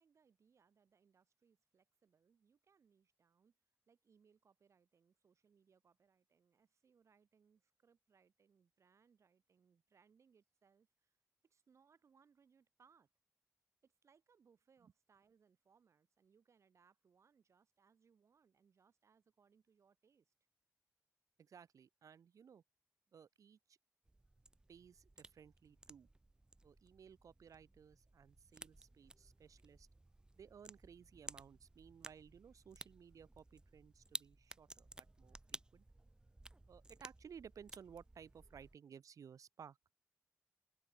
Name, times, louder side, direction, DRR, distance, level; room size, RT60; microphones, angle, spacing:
voice 1, 0.0-3.6 3.9-11.1 11.4-13.1 13.8-20.3 23.1-23.2, right 6 dB, 60° right, 6.5 m, -73 dB
voice 2, 21.4-22.6 23.1-23.8 24.7-26.1 26.6-29.9 30.4-35.9 36.7-39.8, right 7 dB, 85° right, 2.3 m, -58 dB
sound 1, 24.0-38.8, right 2 dB, 15° right, 0.9 m, -56 dB
wide cardioid pair, 165°, 6 cm